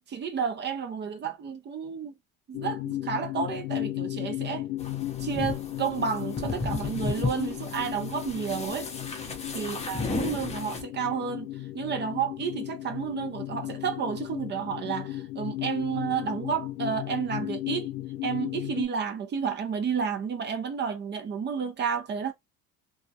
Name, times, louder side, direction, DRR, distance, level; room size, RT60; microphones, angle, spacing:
voice 1, 0.1-2.1 2.5-4.6 5.2-8.9 9.5-17.9 18.2-22.3, right 6 dB, 30° right, 0.5 m, -31 dB
sound 1, 2.5-18.9, left 15 dB, 80° left, 0.5 m, -35 dB
sound 2, 4.8-10.8, left 3 dB, 20° left, 0.6 m, -34 dB
2.3 x 2.0 x 2.7 m
cardioid pair, 115°, 36 cm